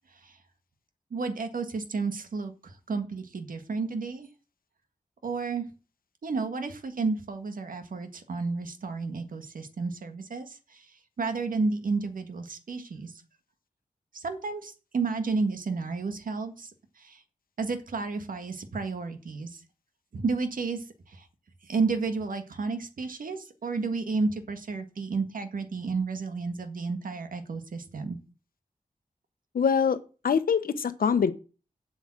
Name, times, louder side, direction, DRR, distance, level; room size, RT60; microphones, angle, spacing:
voice 1, 1.1-4.3 5.2-5.6 6.2-10.8 11.2-13.1 14.1-17.2 17.6-19.6 20.1-21.2 21.6-28.2, right 4 dB, 70° right, 8 dB, 1.7 m, -32 dB
voice 2, 29.5-30.0 30.2-31.3, left 6 dB, 90° left, 11 dB, 1.0 m, -24 dB
8.1 x 7.1 x 7.6 m, 0.36 s
wide cardioid pair, 120°, 15 cm